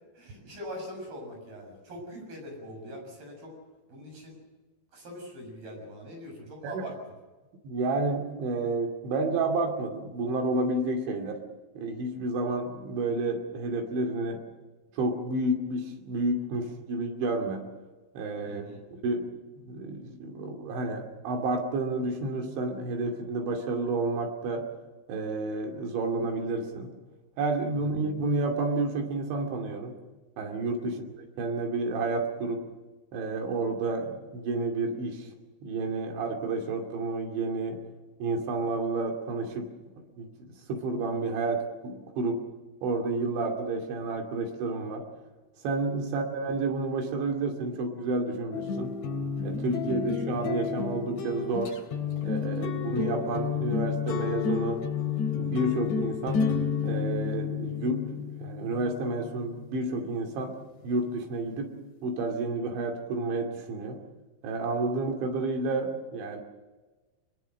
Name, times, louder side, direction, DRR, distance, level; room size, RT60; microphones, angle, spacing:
voice 1, 0.2-3.6 3.9-4.4 4.9-7.0 18.5-18.8 30.9-31.0 46.1-46.3, equal, 55° right, 2 dB, 8.6 m, -42 dB
voice 2, 7.6-11.4 11.8-14.4 14.9-17.6 18.1-18.6 18.9-19.3 19.6-24.7 25.1-26.9 27.4-30.0 30.4-32.6 33.1-35.3 35.6-37.8 38.2-39.7 40.2-42.4 42.8-45.1 45.6-48.9 49.4-51.7 52.2-54.9 55.4-56.4 56.8-60.6 60.8-61.7 62.0-64.0 64.4-66.4, right 2 dB, 75° right, 3 dB, 4.9 m, -30 dB
sound 1, 48.5-59.4, left 7 dB, 85° left, 5.6 m, -31 dB
23.5 x 22.5 x 6.6 m, 1.2 s
omnidirectional pair, 5.3 m